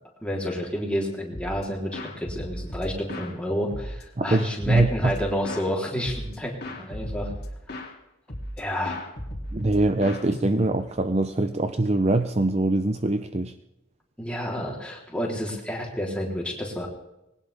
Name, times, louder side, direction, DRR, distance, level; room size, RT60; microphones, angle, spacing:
voice 1, 0.2-7.3 8.6-9.0 14.2-16.9, equal, 5° left, -2 dB, 3.5 m, -30 dB
sound 1, 1.3-1.6 1.9-3.3 3.7-5.7 6.0-6.4 6.6-7.9 8.3-8.6 8.8-10.9, left 1 dB, 50° left, 3.0 m, -36 dB
voice 2, 4.2-5.1 9.5-13.5, right 2 dB, 30° right, 9 dB, 0.6 m, -23 dB
21.0 x 18.5 x 3.5 m, 0.91 s
head